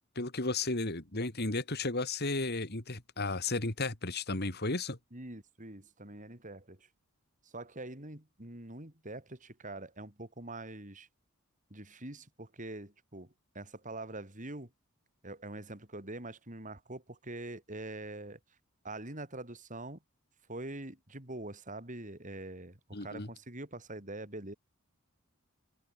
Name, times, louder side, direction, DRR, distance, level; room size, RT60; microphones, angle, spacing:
voice 1, 0.2-5.0 22.9-23.3, left 3 dB, 45° left, 2.7 m, -34 dB
voice 2, 5.1-6.9 7.4-11.1 11.7-14.7 15.2-18.4 18.8-20.0 20.5-24.5, right 2 dB, 35° right, 4.2 m, -44 dB
open air
head